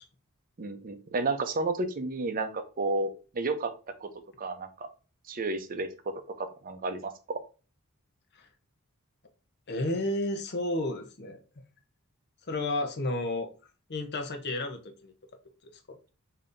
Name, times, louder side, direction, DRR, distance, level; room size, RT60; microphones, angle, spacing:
voice 1, 0.6-3.7 4.0-4.1 4.4-4.9 5.3-7.4, right 3 dB, 40° right, 8 dB, 0.6 m, -32 dB
voice 2, 9.7-11.4 12.5-13.5 13.9-15.1 15.9-16.0, left 2 dB, 50° left, 6 dB, 0.7 m, -31 dB
5.2 x 2.8 x 2.5 m, 0.34 s
head